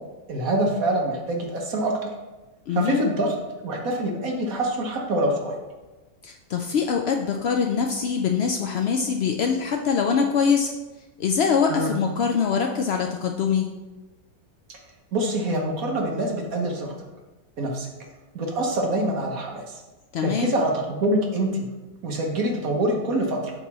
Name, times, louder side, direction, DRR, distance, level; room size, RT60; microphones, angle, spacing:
voice 1, 0.3-2.1 2.7-3.3 3.6-5.5 11.7-11.9 15.1-17.0 17.6-17.9 18.3-19.8 20.2-21.6 22.0-23.5, right 1 dB, 65° right, 0 dB, 1.5 m, -25 dB
voice 2, 2.7-3.0 6.2-10.7 11.2-13.7 20.1-20.5, left 6 dB, 75° left, 3 dB, 0.5 m, -23 dB
8.0 x 3.0 x 6.0 m, 1.2 s
omnidirectional pair, 1.6 m